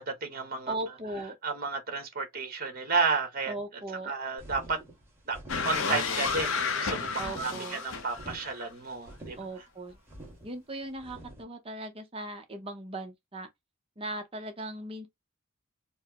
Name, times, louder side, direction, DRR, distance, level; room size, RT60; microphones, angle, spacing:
voice 1, 0.0-0.7 1.4-3.8 4.1-4.8 5.3-5.4 5.6-9.4, right 4 dB, 45° right, 1.2 m, -32 dB
voice 2, 0.7-1.4 3.5-4.1 7.2-7.8 9.4-10.0 10.4-13.5 14.0-15.1, right 2 dB, 30° right, 0.6 m, -38 dB
sound 1, 4.4-11.4, right 1 dB, 10° right, 1.5 m, -47 dB
sound 2, 5.5-8.6, left 5 dB, 70° left, 0.7 m, -31 dB
4.5 x 2.0 x 2.8 m
head